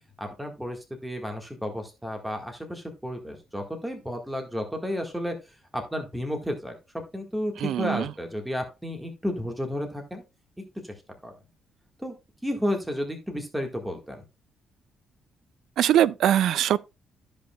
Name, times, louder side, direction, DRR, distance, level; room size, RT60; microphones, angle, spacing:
voice 1, 0.2-10.2 10.8-10.9 11.2-11.3 12.0-12.1 12.4-14.2, equal, 5° right, 1.7 m, -32 dB
voice 2, 7.6-8.1 15.8-16.8, right 11 dB, 75° right, 0.4 m, -22 dB
14.0 x 5.2 x 2.3 m
cardioid pair, 90°, 0 cm